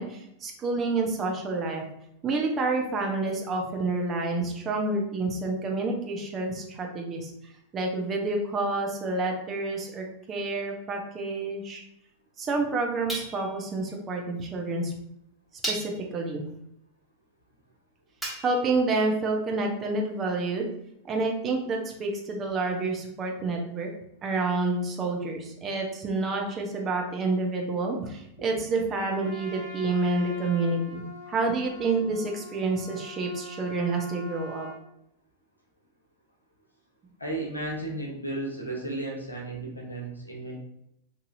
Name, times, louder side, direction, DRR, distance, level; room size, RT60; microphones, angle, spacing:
voice 1, 0.0-1.8 2.2-7.3 7.7-11.8 12.4-14.9 15.7-16.4 18.4-20.7 21.0-23.9 24.2-34.7, right 3 dB, 25° right, 1 dB, 0.7 m, -28 dB
sound 1, 10.5-10.7 13.1-13.7 14.7-14.8 15.6-16.2 18.2-18.7, right 2 dB, ahead, 1.0 m, -35 dB
Trumpet, 29.0-34.8, left 3 dB, 50° left, 1.0 m, -44 dB
voice 2, 37.2-40.5, right 2 dB, 85° left, -1 dB, 0.8 m, -34 dB
4.0 x 2.7 x 2.6 m, 0.79 s
figure-of-eight pair, 90°, 0 cm